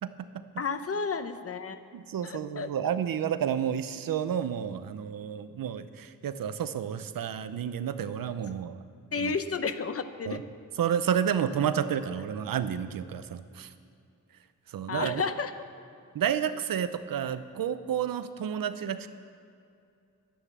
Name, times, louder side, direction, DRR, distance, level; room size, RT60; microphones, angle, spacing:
voice 1, 0.0-0.4 1.9-8.8 9.2-9.3 10.3-10.4 10.8-13.7 14.7-15.2 16.1-19.1, right 8 dB, 80° right, 12 dB, 0.7 m, -30 dB
voice 2, 0.6-1.8 2.2-3.0 9.1-10.4 14.9-15.5, left 5 dB, 45° left, 10 dB, 0.7 m, -32 dB
11.0 x 10.0 x 7.4 m, 2.5 s
wide cardioid pair, 150°, 33 cm